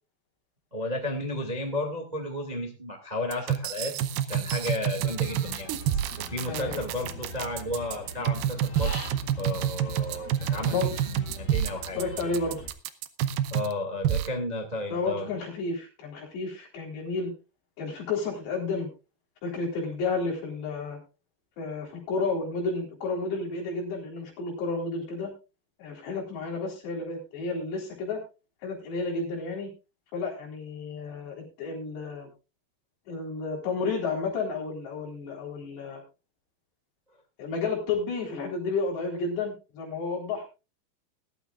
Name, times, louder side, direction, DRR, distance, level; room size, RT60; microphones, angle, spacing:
voice 1, 0.7-3.9 4.3-5.7 6.3-8.9 9.4-12.0 13.5-15.3, left 1 dB, 35° right, 2 dB, 0.6 m, -33 dB
sound 1, 3.3-13.7 14.0-14.3, right 10 dB, 80° right, 2.2 m, -28 dB
Human voice / Bird, 5.0-12.7, equal, 30° left, 1.2 m, -41 dB
voice 2, 6.5-6.8 10.7-10.9 12.0-12.6 14.9-17.3 17.8-18.9 19.4-21.0 21.6-25.3 25.8-28.2 28.6-29.7 30.1-32.3 33.1-36.0 37.4-40.6, left 3 dB, 70° left, -5 dB, 5.7 m, -31 dB
20.0 x 12.5 x 2.5 m, 0.30 s
omnidirectional pair, 5.1 m